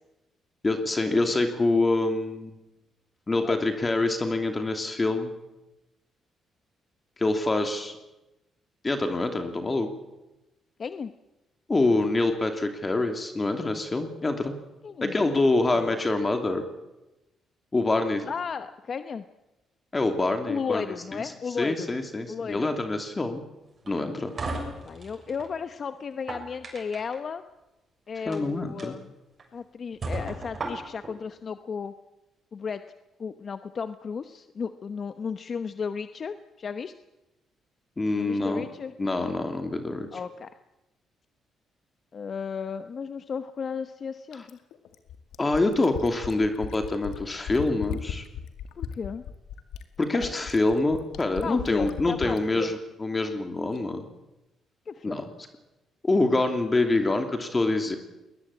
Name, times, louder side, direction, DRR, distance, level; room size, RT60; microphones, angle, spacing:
voice 1, 0.6-2.5 3.3-5.3 7.2-8.0 8.8-9.9 11.7-14.5 15.0-16.6 17.7-18.3 19.9-20.8 21.1-21.2 21.6-23.4 23.9-24.3 28.3-28.9 38.0-38.7 39.0-40.1 45.4-48.2 50.0-54.0 55.0-55.2 56.0-58.0, left 2 dB, 25° left, 6 dB, 2.8 m, -25 dB
voice 2, 10.8-11.1 14.8-15.2 15.7-15.9 18.3-19.3 20.5-21.9 22.3-22.7 24.8-27.4 28.1-29.1 29.5-31.9 32.5-32.8 33.2-36.9 38.1-39.3 40.1-40.6 42.1-44.6 48.8-49.2 51.4-52.7 54.9-55.3, left 6 dB, 45° left, 10 dB, 1.0 m, -34 dB
sound 1, 23.8-25.5 26.1-27.2 28.2-28.4 28.8-28.9 29.4-29.5 30.0-31.1, right 2 dB, 40° right, 6.7 m, -35 dB
Fill (with liquid), 44.3-52.4 53.8-53.9, left 9 dB, 85° left, 2.0 m, -37 dB
21.0 x 20.5 x 8.6 m, 0.99 s
cardioid pair, 90°, 0 cm